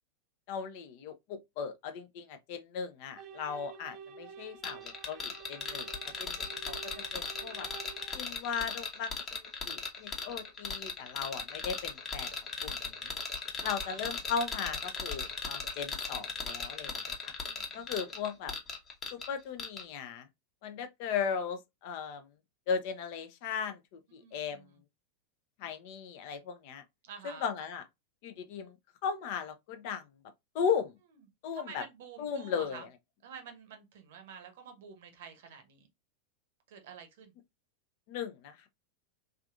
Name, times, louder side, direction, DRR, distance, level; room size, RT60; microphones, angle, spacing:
voice 1, 0.5-5.9 6.2-7.7 8.1-12.3 12.6-13.2 13.6-17.3 17.7-18.5 19.1-20.3 20.6-22.3 22.7-24.6 25.6-26.8 27.2-27.9 28.2-28.7 29.0-30.0 30.5-30.9 31.4-31.8 32.2-32.9 38.1-38.7, left 6 dB, 45° left, 0.5 m, -37 dB
sound 1, 3.2-8.2, right 8 dB, 35° right, 0.4 m, -49 dB
sound 2, 4.6-19.3 19.6-19.8, left 5 dB, 25° left, 0.9 m, -37 dB
voice 2, 13.6-14.2 17.4-17.9 24.1-24.8 27.0-27.5 31.5-32.8 33.2-35.9 36.7-37.3, right 6 dB, 55° right, 0.8 m, -49 dB
3.4 x 2.5 x 2.4 m
figure-of-eight pair, 90°, 0 cm